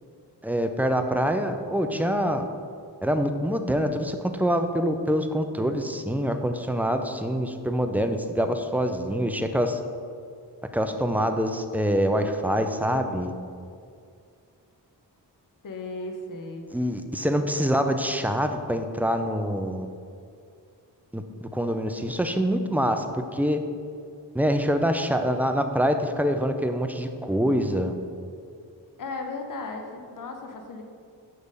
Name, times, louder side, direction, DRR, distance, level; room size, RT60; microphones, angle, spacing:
voice 1, 0.4-2.4 3.0-9.8 10.7-13.3 16.7-19.9 21.1-23.6 24.3-27.9, equal, 5° right, 6 dB, 0.4 m, -25 dB
voice 2, 15.6-16.7 29.0-30.8, left 3 dB, 50° left, 3 dB, 0.9 m, -35 dB
6.4 x 3.4 x 5.3 m, 2.3 s
cardioid pair, 60°, 42 cm